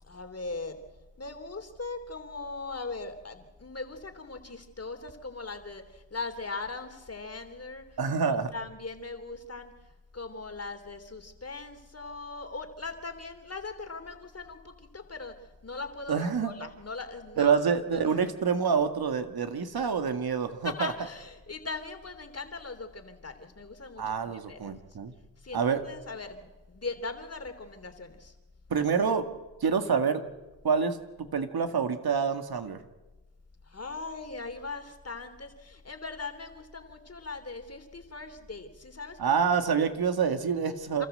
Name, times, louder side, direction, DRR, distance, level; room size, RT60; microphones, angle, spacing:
voice 1, 0.0-0.8 1.2-8.0 8.5-9.7 10.1-15.3 15.6-17.5 17.9-18.2 19.8-19.9 20.6-24.7 25.4-28.3 33.7-39.3 39.7-39.8 41.0-41.1, left 3 dB, 35° left, 6 dB, 3.3 m, -40 dB
voice 2, 8.0-8.5 16.1-16.5 17.4-20.9 24.0-25.1 25.5-25.8 28.7-29.3 29.6-30.2 30.6-31.0 31.3-32.8 39.2-41.1, right 6 dB, 55° right, 8 dB, 2.1 m, -27 dB
29.0 x 13.5 x 7.9 m, 1.1 s
cardioid pair, 55°, 44 cm